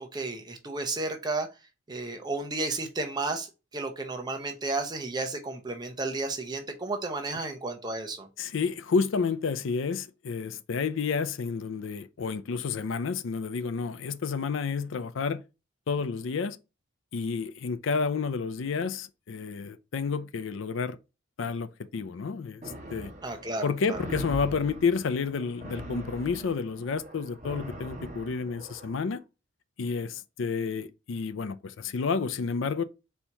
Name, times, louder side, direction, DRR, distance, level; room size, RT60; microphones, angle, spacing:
voice 1, 0.0-1.5 1.9-3.5 3.7-8.3 23.2-24.0, right 3 dB, 20° right, 0.7 m, -32 dB
voice 2, 8.4-15.4 15.9-16.6 17.1-21.0 21.4-22.6 22.9-23.1 23.6-29.2 29.8-32.8, left 5 dB, 65° left, 0.4 m, -30 dB
sound 1, 22.6-29.1, right 1 dB, 35° right, 1.1 m, -42 dB
4.4 x 2.8 x 3.4 m
head